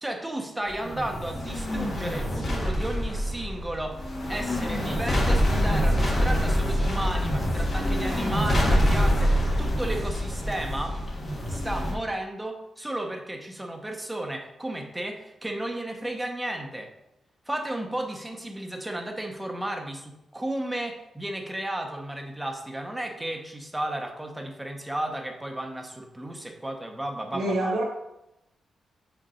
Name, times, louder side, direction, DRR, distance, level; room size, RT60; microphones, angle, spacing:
voice 1, 0.0-4.0 4.3-11.0 11.5-16.9 17.5-27.7, right 1 dB, 10° right, 3 dB, 0.8 m, -33 dB
sound 1, 0.7-11.9, equal, 30° left, 1.3 m, -25 dB
voice 2, 27.3-27.8, right 1 dB, 85° right, -1 dB, 1.5 m, -26 dB
5.2 x 5.1 x 4.3 m, 0.87 s
wide cardioid pair, 160°, 0 cm